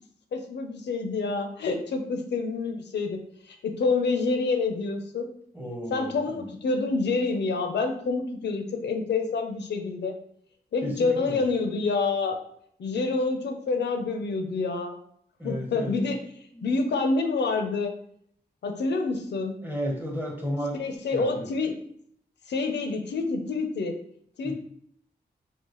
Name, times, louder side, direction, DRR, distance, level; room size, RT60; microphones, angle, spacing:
voice 1, 0.3-3.2 3.5-5.2 5.9-10.1 10.7-12.4 12.8-15.0 15.4-16.2 16.6-17.9 18.6-19.6 20.8-21.7 22.5-24.0 24.4-24.5, left 3 dB, 80° left, 5 dB, 0.6 m, -27 dB
voice 2, 5.5-6.5 10.8-11.4 15.4-16.0 16.5-16.7 19.6-20.8 21.0-21.5 24.4-24.5, equal, 10° right, 1 dB, 1.2 m, -33 dB
3.8 x 2.4 x 3.0 m, 0.67 s
cardioid pair, 50°, 17 cm